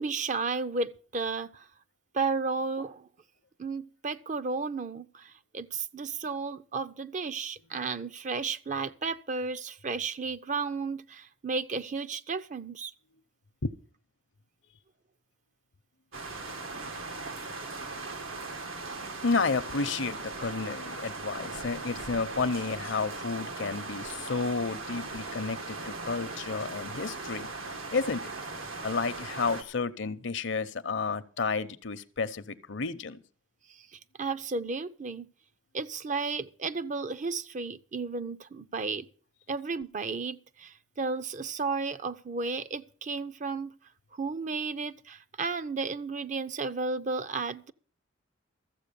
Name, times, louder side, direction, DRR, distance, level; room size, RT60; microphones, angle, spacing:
voice 1, 0.0-1.7 2.1-3.1 3.6-12.9 33.7-35.3 35.7-39.1 39.5-43.7 44.1-47.7, right 4 dB, 40° right, 0.5 m, -33 dB
sound 1, 16.1-29.6, right 3 dB, 90° right, 1.8 m, -39 dB
voice 2, 19.2-27.5 27.9-28.3 28.8-33.2, left 4 dB, 65° left, 0.7 m, -31 dB
14.0 x 7.6 x 6.8 m
head